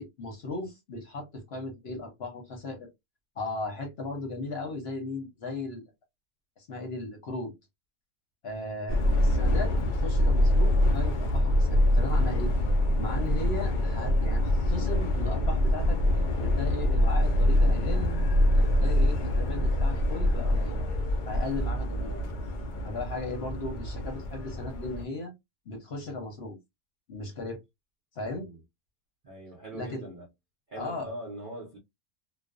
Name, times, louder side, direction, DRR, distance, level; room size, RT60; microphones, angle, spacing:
voice 1, 0.0-2.9 3.4-5.9 6.6-7.6 8.4-12.5 13.0-16.0 16.4-18.1 18.6-20.8 21.3-22.1 22.8-25.3 25.7-26.6 27.1-27.6 28.1-28.5 29.7-30.0 30.8-31.1, left 2 dB, 55° left, 0.9 m, -36 dB
Subway metro underground, 8.9-25.0, left 1 dB, 85° left, 0.4 m, -25 dB
voice 2, 22.0-22.3 23.3-23.7 28.2-28.6 29.2-30.3 30.7-31.8, right 1 dB, 50° right, 0.6 m, -43 dB
2.4 x 2.2 x 2.3 m
omnidirectional pair, 1.5 m